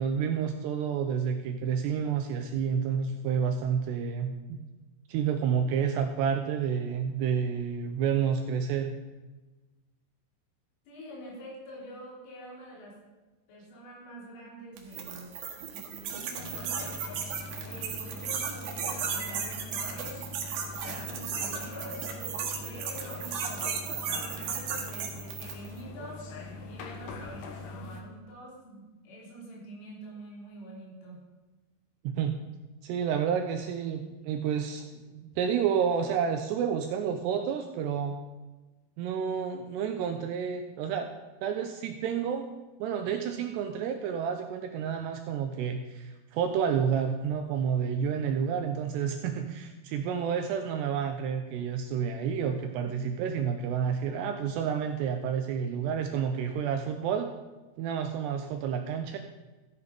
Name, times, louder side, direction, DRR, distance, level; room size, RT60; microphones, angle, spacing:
voice 1, 0.0-4.6 5.1-8.9 32.0-32.4 32.8-38.2 39.0-41.1 41.4-42.5 42.8-57.3 57.8-59.2, right 7 dB, 85° right, 6 dB, 2.5 m, -30 dB
voice 2, 10.9-13.0 13.5-15.3 15.7-17.0 17.6-20.2 20.8-23.7 24.1-26.2 26.7-31.2 52.8-52.9, right 1 dB, 90° left, -3 dB, 6.0 m, -46 dB
sound 1, 14.8-25.7, right 7 dB, 65° right, 2.9 m, -35 dB
sound 2, 16.3-28.0, left 3 dB, 70° left, 2.1 m, -43 dB
14.5 x 8.6 x 5.1 m, 1.2 s
omnidirectional pair, 5.5 m